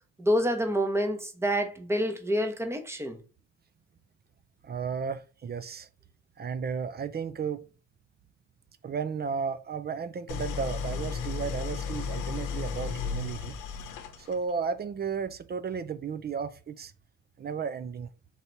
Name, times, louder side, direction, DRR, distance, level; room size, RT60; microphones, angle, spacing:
voice 1, 0.2-3.2, equal, 10° right, 0.9 m, -27 dB
voice 2, 4.6-5.9 6.4-7.7 8.8-13.6 14.2-16.9 17.4-18.1, right 6 dB, 35° right, 0.5 m, -34 dB
Idling, 10.3-14.5, left 5 dB, 80° left, 0.8 m, -34 dB
4.0 x 2.8 x 4.5 m
cardioid pair, 90°, 30 cm